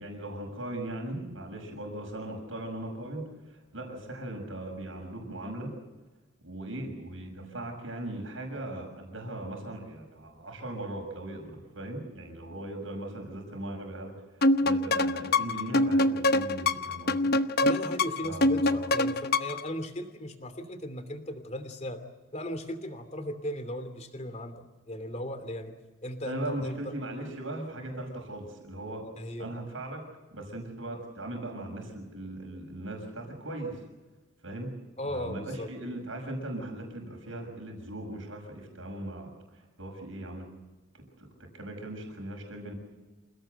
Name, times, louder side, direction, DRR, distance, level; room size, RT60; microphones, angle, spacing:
voice 1, 0.0-5.7 6.4-17.3 18.2-18.9 26.2-29.0 29.4-30.0 30.3-33.8 34.4-34.7 35.1-40.4 40.9-42.7, right 1 dB, 70° right, 2 dB, 6.4 m, -39 dB
sound 1, 14.4-19.7, left 2 dB, 50° left, 0.9 m, -25 dB
voice 2, 17.6-22.0 22.3-25.7 26.0-26.8 29.0-29.5 35.0-35.7, equal, 30° left, 9 dB, 2.8 m, -37 dB
28.0 x 17.5 x 8.1 m, 1.2 s
head